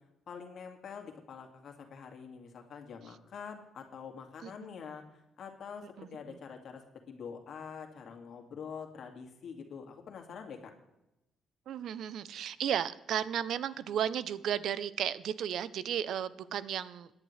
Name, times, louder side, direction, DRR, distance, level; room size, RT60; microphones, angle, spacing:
voice 1, 0.3-10.7, left 6 dB, 60° left, 3 dB, 2.1 m, -46 dB
voice 2, 6.0-6.4 11.7-17.1, right 9 dB, 70° right, 16 dB, 0.6 m, -34 dB
18.0 x 10.5 x 3.3 m, 0.92 s
cardioid pair, 90°, 0 cm